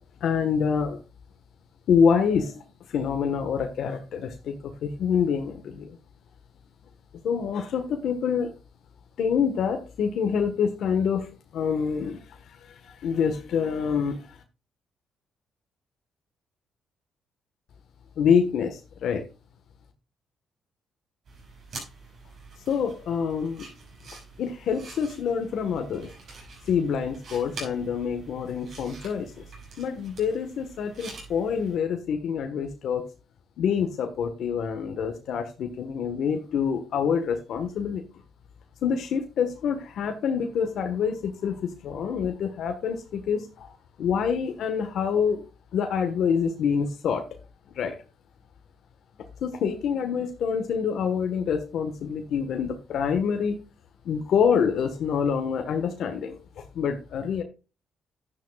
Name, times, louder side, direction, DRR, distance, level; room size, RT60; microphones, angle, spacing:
voice 1, 0.2-1.0 1.9-2.6 2.9-6.0 7.2-8.5 9.2-12.2 12.8-14.2 18.2-19.2 22.7-23.7 24.4-26.1 26.7-29.4 29.8-33.1 33.6-38.0 38.8-43.7 44.0-45.4 45.7-47.3 47.8-47.9 49.4-53.6 54.0-56.4 56.7-57.4, left 7 dB, 70° left, 6 dB, 1.3 m, -26 dB
sound 1, 21.3-31.8, right 3 dB, 60° right, 6.3 m, -46 dB
11.5 x 9.7 x 2.4 m, 0.30 s
cardioid pair, 90°, 0 cm